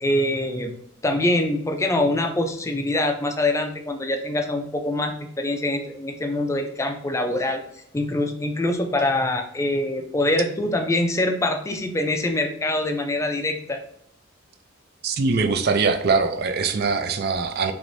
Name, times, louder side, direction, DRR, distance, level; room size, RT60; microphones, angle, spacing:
voice 1, 0.0-0.7 1.0-7.6 7.9-13.8, left 1 dB, 15° left, 5 dB, 0.4 m, -24 dB
voice 2, 15.0-17.7, right 4 dB, 50° right, 8 dB, 0.4 m, -22 dB
4.9 x 3.0 x 2.6 m, 0.70 s
head